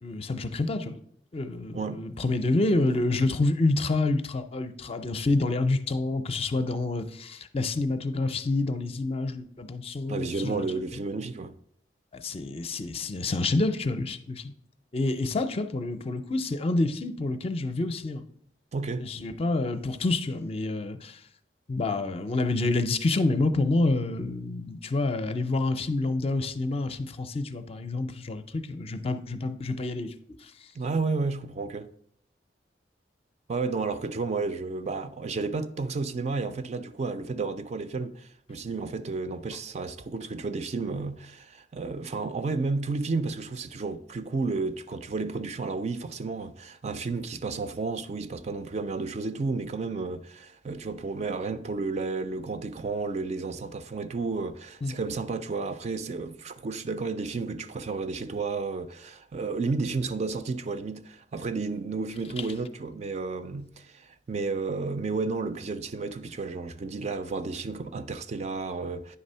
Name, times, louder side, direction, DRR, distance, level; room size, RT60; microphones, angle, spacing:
voice 1, 0.0-1.0 1.3-10.6 12.1-14.5 14.9-18.2 19.0-21.2 21.7-30.1 30.4-30.5 54.8-54.9, left 2 dB, 35° left, 0.5 m, -28 dB
voice 2, 1.7-2.1 10.1-11.6 18.7-19.1 30.7-31.9 33.5-69.2, right 4 dB, 40° right, 0.4 m, -32 dB
9.6 x 3.4 x 5.4 m
head